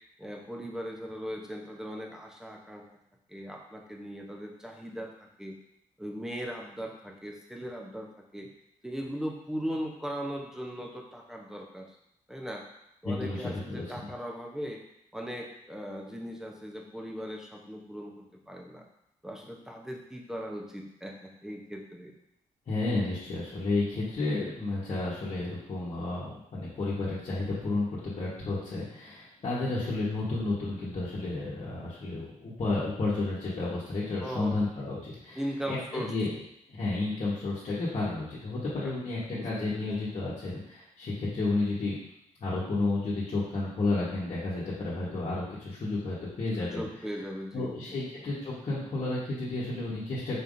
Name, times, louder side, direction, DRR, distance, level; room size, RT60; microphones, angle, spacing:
voice 1, 0.2-2.8 3.3-5.1 5.4-5.6 6.0-8.5 8.8-12.0 12.3-12.7 13.0-14.8 15.1-18.8 19.2-22.1 34.2-34.6 35.3-36.1 38.8-38.9 39.3-39.9 46.6-48.0, equal, 5° right, 0 dB, 0.8 m, -38 dB
voice 2, 13.0-14.1 22.7-35.4 35.7-36.3 36.7-42.0 42.4-46.9 47.5-50.4, left 2 dB, 50° left, -9 dB, 1.2 m, -31 dB
4.3 x 3.4 x 2.6 m, 0.80 s
cardioid pair, 65°, 14 cm